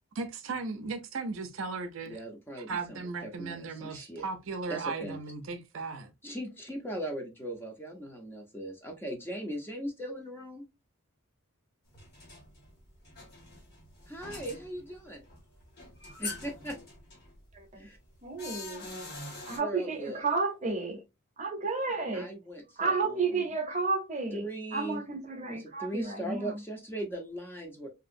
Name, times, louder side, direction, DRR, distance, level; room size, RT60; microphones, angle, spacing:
voice 1, 0.1-2.2 2.6-6.1, right 4 dB, 65° right, 0.5 m, -36 dB
voice 2, 2.0-4.3 4.7-5.2 6.2-10.7 14.1-15.2 16.2-16.8 17.7-18.0 19.6-20.2 22.1-23.5 24.3-25.0 25.5-27.9, right 1 dB, 10° left, 0.6 m, -39 dB
sound 1, 11.9-19.6, left 3 dB, 50° left, 1.4 m, -45 dB
voice 3, 17.5-17.9 18.2-18.9 19.4-21.0 21.4-22.3 22.8-24.4 24.7-26.6, right 4 dB, 35° right, 0.7 m, -32 dB
2.9 x 2.7 x 2.5 m
head